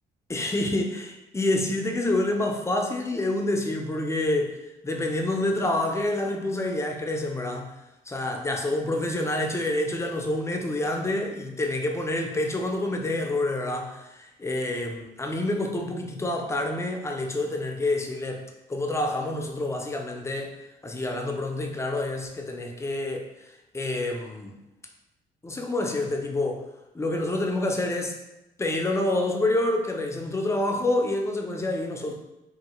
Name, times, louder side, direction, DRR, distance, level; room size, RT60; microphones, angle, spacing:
voice 1, 0.3-4.6 4.8-7.8 8.1-18.4 18.7-20.6 20.8-24.6 25.4-26.7 26.9-28.2 28.6-32.1, left 2 dB, 15° left, 2 dB, 0.5 m, -27 dB
3.1 x 2.2 x 2.9 m, 0.95 s
cardioid pair, 85°, 18 cm